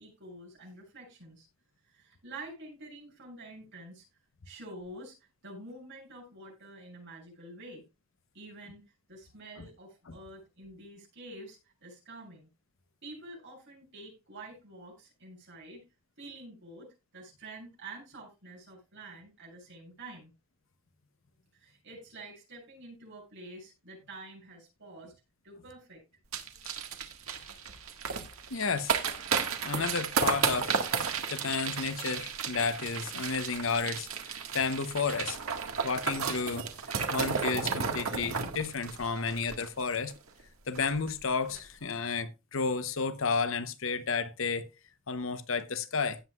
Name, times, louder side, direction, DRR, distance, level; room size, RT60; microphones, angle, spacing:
voice 1, 0.0-1.5 1.9-4.0 4.4-5.1 5.4-7.8 8.3-8.8 9.1-12.5 13.0-15.8 16.2-20.3 21.5-25.1 25.4-26.0, right 2 dB, 60° right, 7.8 m, -48 dB
sound 1, 26.3-40.1 40.4-40.5 40.7-41.1 41.4-41.6, right 6 dB, 80° right, 1.6 m, -33 dB
voice 2, 28.5-28.9 29.6-35.4 35.8-36.7 37.1-40.1 40.7-44.7 45.1-46.2, left 5 dB, 65° left, 0.9 m, -32 dB
17.0 x 7.7 x 2.4 m
head